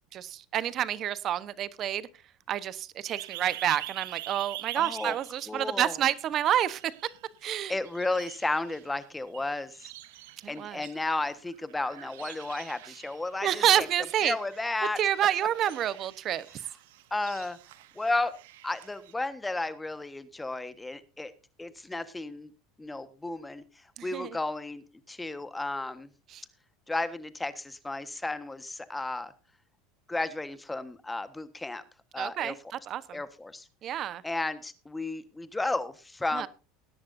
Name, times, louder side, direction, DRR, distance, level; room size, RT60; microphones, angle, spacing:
voice 1, 0.1-2.1 2.5-6.8 7.4-7.7 10.4-10.8 13.4-14.4 15.0-16.5 24.0-24.3 26.3-26.4 32.2-32.6 32.9-33.2 33.8-34.2 36.3-36.5, right 11 dB, 40° right, 1.1 m, -28 dB
sound 1, 3.1-6.3 6.7-7.6 7.8-19.1, right 16 dB, 80° right, 1.2 m, -45 dB
voice 2, 4.8-5.2 5.5-6.0 7.7-9.9 10.5-13.9 14.2-15.0 17.1-17.6 17.9-18.3 18.6-21.3 21.6-22.5 22.8-23.6 24.0-26.1 26.9-29.3 30.1-31.8 32.1-32.5 33.1-33.7 34.2-36.5, left 2 dB, 10° left, 1.4 m, -33 dB
20.0 x 10.5 x 2.7 m
supercardioid pair, 115°, 0 cm